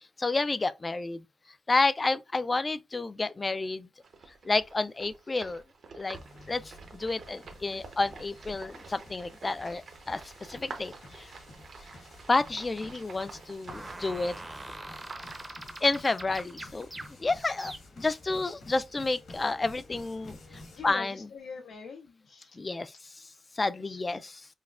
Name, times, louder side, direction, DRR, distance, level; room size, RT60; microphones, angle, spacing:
voice 1, 0.2-1.2 1.7-3.9 4.4-5.6 5.9-6.2 6.5-11.3 12.3-14.3 15.8-16.9 17.2-21.3 22.6-22.9 23.6-24.5, left 3 dB, 30° left, 0.3 m, -30 dB
sound 1, 4.0-15.6, right 4 dB, 60° right, 0.8 m, -48 dB
sound 2, 6.1-20.9, left 2 dB, 70° left, 1.4 m, -52 dB
sound 3, 13.7-18.2, right 1 dB, 15° right, 0.6 m, -43 dB
voice 2, 20.7-22.6 23.9-24.1, left 5 dB, 85° left, 0.5 m, -44 dB
5.3 x 2.2 x 2.4 m
cardioid pair, 105°, 0 cm